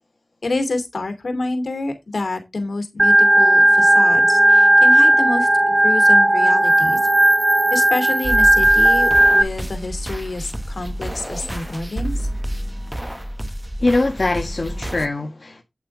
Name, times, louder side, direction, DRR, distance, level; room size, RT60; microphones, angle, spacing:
voice 1, 0.4-7.0 7.7-12.3, left 2 dB, 75° left, 2.7 m, -27 dB
Organ, 3.0-9.4, right 1 dB, 30° right, 0.7 m, -14 dB
sound 1, 8.2-15.1, equal, 10° right, 1.0 m, -29 dB
voice 2, 13.8-15.6, left 2 dB, 50° left, 1.7 m, -22 dB
8.9 x 8.3 x 3.5 m
wide cardioid pair, 70°, 0 cm